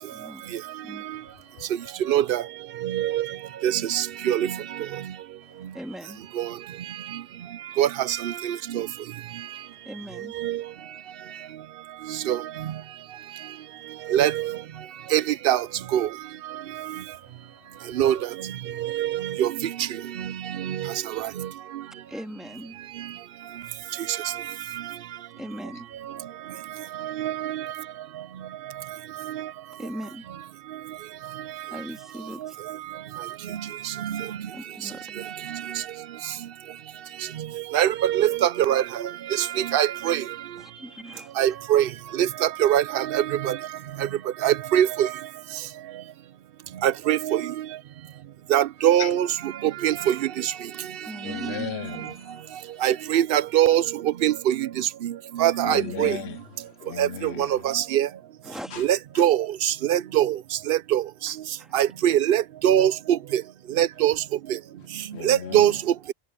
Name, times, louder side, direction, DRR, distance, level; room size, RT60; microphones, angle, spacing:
voice 1, 0.1-0.5 0.8-1.0 5.7-6.2 9.8-10.5 22.1-22.8 25.4-25.9 29.8-30.2 31.7-32.6 34.5-35.2 40.6-41.3 51.0-52.1 55.7-56.3 58.4-58.8 61.6-61.8, equal, ahead, 1.8 m, -39 dB
voice 2, 1.1-1.9 5.4-5.8 9.4-9.9 11.3-11.5 12.1-12.3 13.1-14.1 16.8-18.1 18.7-18.9 23.5-23.7 25.7-25.8 49.0-49.1 51.2-52.8 55.4-57.7 58.7-58.9 59.1-59.2 65.1-65.8, left 8 dB, 90° left, 1.1 m, -40 dB
voice 3, 2.0-2.4 2.8-3.3 3.6-4.6 6.4-6.5 7.8-8.9 10.4-10.6 12.1-12.4 14.1-14.6 15.1-15.7 15.9-16.1 18.0-18.2 18.8-19.9 20.2-21.5 24.1-24.4 27.0-27.7 29.3-29.4 33.8-34.3 35.5-35.8 37.7-40.2 41.4-43.6 44.0-44.1 44.4-45.1 46.8-47.5 48.5-49.3 49.6-50.5 51.4-51.6 52.8-56.2 57.0-58.1 58.8-60.4 60.7-61.3 61.7-63.4 63.8-64.1 65.2-65.7, right 11 dB, 65° right, 0.7 m, -23 dB
omnidirectional pair, 1.1 m